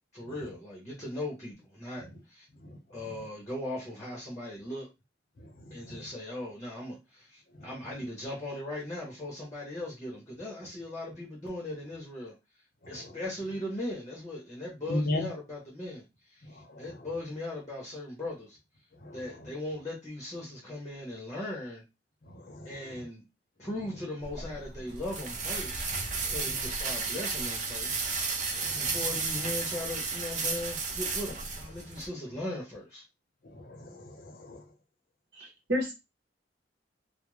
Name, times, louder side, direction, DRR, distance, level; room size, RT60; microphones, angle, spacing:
voice 1, 0.1-2.5 2.9-4.9 5.7-12.3 12.9-16.0 16.3-18.6 19.1-21.8 22.6-23.2 23.6-25.9 26.3-28.1 28.8-33.0, left 1 dB, 20° left, 0.8 m, -38 dB
voice 2, 5.4-6.0 7.5-7.7 12.8-13.2 14.9-15.3 16.4-17.1 19.0-19.5 22.2-23.0 26.2-26.6 28.5-29.0 33.4-34.6, left 1 dB, 55° left, 0.7 m, -38 dB
sound 1, 24.2-32.1, right 4 dB, 45° right, 0.4 m, -33 dB
voice 3, 35.4-35.9, equal, 65° right, 0.8 m, -30 dB
2.4 x 2.0 x 3.1 m
head